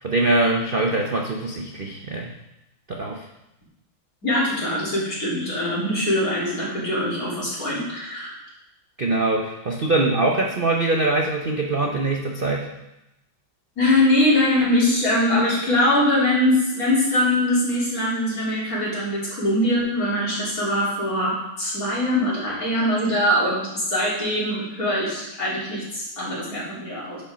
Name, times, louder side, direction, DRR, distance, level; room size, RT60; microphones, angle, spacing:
voice 1, 0.0-2.3 2.9-3.2 9.0-12.7, right 2 dB, 75° right, 0 dB, 0.5 m, -23 dB
voice 2, 4.2-8.3 13.8-27.2, left 1 dB, 45° left, -7 dB, 3.7 m, -22 dB
9.8 x 5.7 x 5.0 m, 0.91 s
omnidirectional pair, 2.2 m